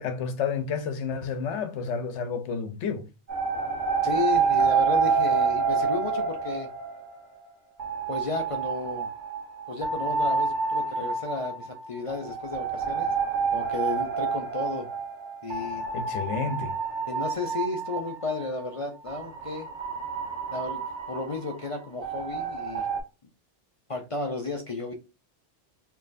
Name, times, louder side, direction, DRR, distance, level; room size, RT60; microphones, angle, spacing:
voice 1, 0.0-3.1 15.9-16.7, left 6 dB, 75° left, 1.0 m, -30 dB
sound 1, 3.3-7.4 7.8-18.4 19.1-23.0, right 5 dB, 75° right, 1.5 m, -28 dB
voice 2, 4.0-6.7 8.1-9.1 9.7-13.1 13.5-14.9 15.4-15.8 17.1-19.7 20.5-20.8 21.1-22.9 23.9-24.9, left 3 dB, 45° left, 0.4 m, -33 dB
4.5 x 3.0 x 2.5 m
omnidirectional pair, 1.2 m